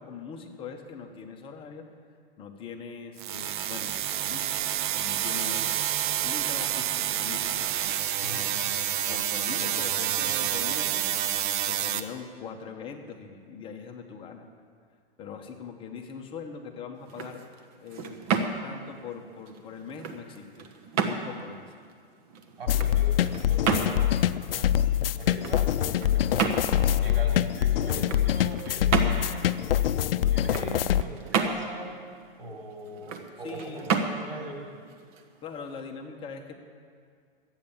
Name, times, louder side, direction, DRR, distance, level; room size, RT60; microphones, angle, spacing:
voice 1, 0.0-1.9 2.4-5.8 6.2-7.7 8.2-8.5 9.1-14.4 15.2-17.4 17.8-18.2 18.6-20.7 21.0-21.7 33.4-33.9 35.4-36.5, left 5 dB, 20° left, 2 dB, 1.1 m, -41 dB
sound 1, 3.2-12.0, right 11 dB, 55° right, 0.8 m, -28 dB
sound 2, 17.0-35.8, right 5 dB, 40° right, 1.1 m, -33 dB
voice 2, 22.6-26.5 26.9-29.9 30.2-31.9 32.4-34.7, right 2 dB, 80° right, -1 dB, 3.4 m, -41 dB
sound 3, 22.7-31.0, left 11 dB, 75° left, 0.5 m, -25 dB
12.5 x 9.0 x 7.1 m, 2.1 s
hypercardioid pair, 140°, 29 cm